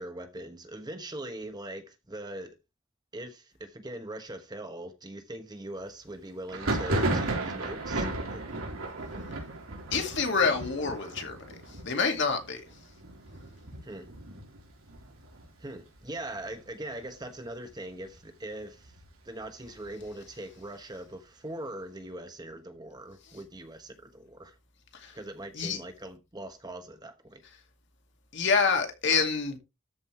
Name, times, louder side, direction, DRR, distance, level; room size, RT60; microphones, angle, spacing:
voice 1, 0.0-2.5 3.1-8.4 13.8-14.1 15.6-18.9 19.2-24.6 25.1-27.4, right 1 dB, 20° right, 1.1 m, -41 dB
Thunder, 6.5-16.0 16.3-16.9 17.2-18.2 18.6-20.3, right 2 dB, 85° right, 3.7 m, -35 dB
voice 2, 9.9-11.4 11.7-12.6 24.9-25.2 25.5-25.8 28.3-29.6, left 5 dB, 55° left, 2.3 m, -27 dB
13.5 x 5.4 x 3.2 m
head